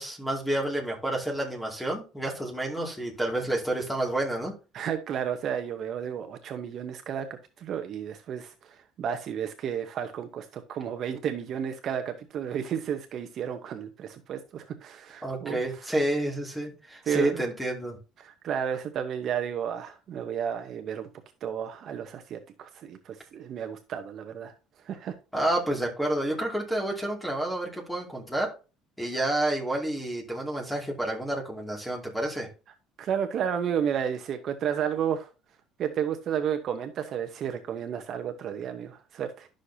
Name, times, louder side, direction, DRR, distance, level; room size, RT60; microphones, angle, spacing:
voice 1, 0.0-4.5 15.2-18.0 25.3-28.5 29.0-32.5, right 1 dB, 5° left, 2.4 m, -29 dB
voice 2, 4.7-7.3 7.6-15.6 17.0-17.4 18.2-21.1 21.4-24.5 24.9-25.1 33.0-35.3 35.8-39.5, right 8 dB, 45° right, 0.9 m, -32 dB
11.5 x 6.4 x 2.8 m
cardioid pair, 145°, 0 cm